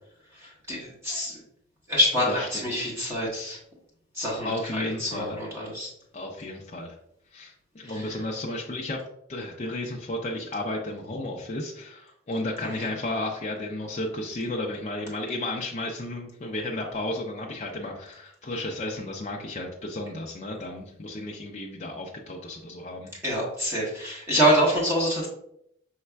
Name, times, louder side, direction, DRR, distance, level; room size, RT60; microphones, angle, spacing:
voice 1, 0.4-1.4 1.9-3.6 4.1-5.9 7.9-8.2 12.7-12.9 23.2-25.3, equal, 15° right, -6 dB, 1.2 m, -26 dB
voice 2, 2.3-2.6 4.4-5.4 6.1-6.9 7.3-9.0 9.3-23.1, left 1 dB, 35° left, -1 dB, 0.4 m, -33 dB
5.5 x 3.2 x 2.2 m, 0.73 s
head